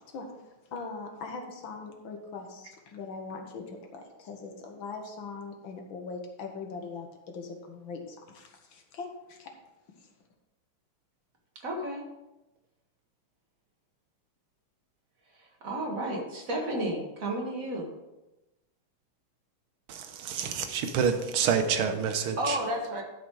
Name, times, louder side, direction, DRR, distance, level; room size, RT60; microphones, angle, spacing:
voice 1, 0.1-9.5 10.0-10.1, left 4 dB, 70° left, 3 dB, 1.9 m, -41 dB
voice 2, 11.6-12.1 15.3-17.9 22.4-23.0, right 1 dB, 40° right, 0 dB, 2.0 m, -32 dB
voice 3, 19.9-22.6, right 7 dB, 90° right, 7 dB, 1.8 m, -28 dB
12.0 x 5.1 x 4.8 m, 0.99 s
omnidirectional pair, 2.3 m